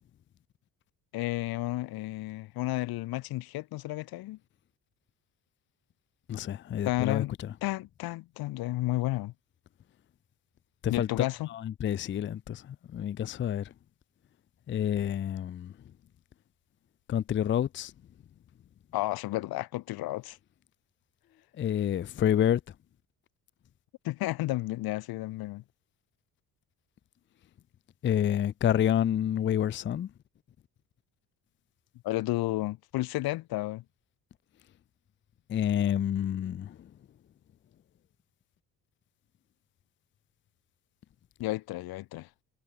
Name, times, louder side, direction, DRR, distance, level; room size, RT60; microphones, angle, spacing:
voice 1, 1.1-4.4 6.8-7.3 7.6-9.3 10.9-11.5 18.9-20.4 24.0-25.6 32.0-33.8 41.4-42.3, left 17 dB, 75° left, 0.9 m, -32 dB
voice 2, 6.3-7.6 10.8-13.7 14.7-15.7 17.1-17.9 21.6-22.6 28.0-30.1 35.5-36.9, left 10 dB, 35° left, 0.5 m, -28 dB
cardioid pair, 115°, 36 cm